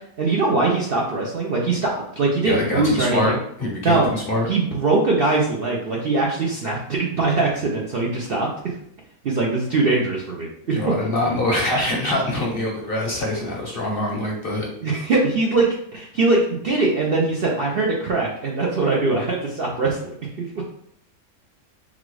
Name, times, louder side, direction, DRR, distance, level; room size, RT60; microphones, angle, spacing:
voice 1, 0.2-3.4 3.8-4.1 4.5-8.7 9.2-10.9 14.8-20.1 20.4-20.5, right 3 dB, 55° right, -2 dB, 0.7 m, -22 dB
voice 2, 2.4-4.5 10.7-14.7, left 1 dB, 50° left, -2 dB, 0.8 m, -24 dB
4.0 x 2.3 x 4.6 m, 0.70 s
omnidirectional pair, 1.5 m